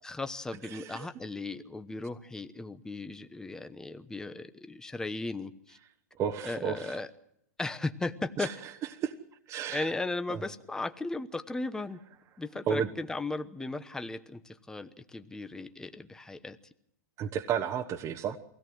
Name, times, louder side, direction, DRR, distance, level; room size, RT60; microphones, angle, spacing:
voice 1, 0.0-5.8 6.4-7.1 7.6-8.5 9.7-12.0 12.4-16.6, left 2 dB, 5° left, 10 dB, 1.0 m, -36 dB
voice 2, 0.7-1.0 6.2-6.7 8.4-8.5 9.0-9.1 9.5-9.8 12.7-12.9 17.2-18.4, right 8 dB, 30° right, 4 dB, 1.2 m, -31 dB
23.5 x 17.0 x 7.8 m, 0.76 s
hypercardioid pair, 130°, 9 cm